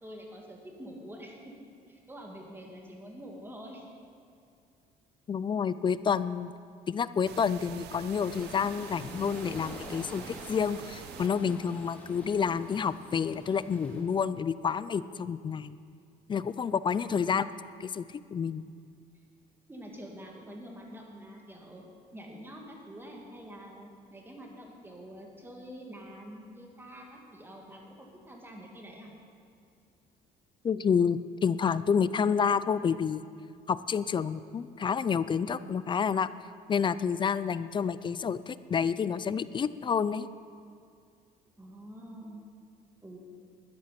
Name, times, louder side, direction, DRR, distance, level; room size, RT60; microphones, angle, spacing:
voice 1, 0.0-1.5 1.9-3.8 17.1-17.5 19.7-21.8 22.1-29.1 41.6-42.4 43.0-43.2, equal, 15° right, 0 dB, 2.5 m, -46 dB
voice 2, 5.3-6.5 6.9-15.8 16.3-17.4 17.8-18.0 18.3-18.7 30.6-33.2 33.7-36.3 36.7-40.3, left 6 dB, 30° left, 16 dB, 0.4 m, -29 dB
sound 1, 7.3-11.3, right 11 dB, 75° right, 0.5 m, -46 dB
sound 2, 8.2-14.0, left 1 dB, 10° left, 2.3 m, -47 dB
13.0 x 10.5 x 5.9 m, 2.3 s
cardioid pair, 110°, 17 cm